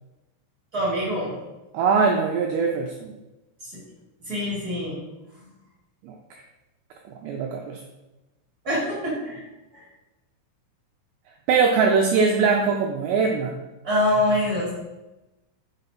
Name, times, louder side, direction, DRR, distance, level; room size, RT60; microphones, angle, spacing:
voice 1, 0.7-1.3 3.6-3.8 4.3-4.9 5.4-5.5 8.6-9.4 9.7-9.8 13.8-14.7, left 1 dB, 35° right, -8 dB, 1.4 m, -25 dB
voice 2, 1.7-3.1 6.0-6.2 7.2-7.8 11.5-13.6, right 5 dB, 85° right, 1 dB, 2.4 m, -21 dB
7.0 x 5.5 x 4.1 m, 1.0 s
omnidirectional pair, 5.6 m